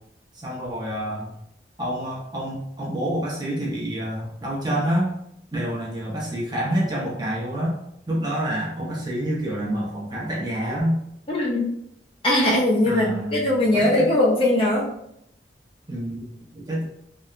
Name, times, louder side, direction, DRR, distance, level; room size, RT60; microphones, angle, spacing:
voice 1, 0.3-1.3 1.8-5.1 5.5-7.7 8.1-11.0 12.8-14.1 15.9-16.8, right 1 dB, 25° right, -4 dB, 0.6 m, -27 dB
voice 2, 11.3-11.7 12.2-14.9, left 1 dB, 30° left, -4 dB, 0.5 m, -20 dB
3.0 x 2.1 x 2.3 m, 0.77 s
head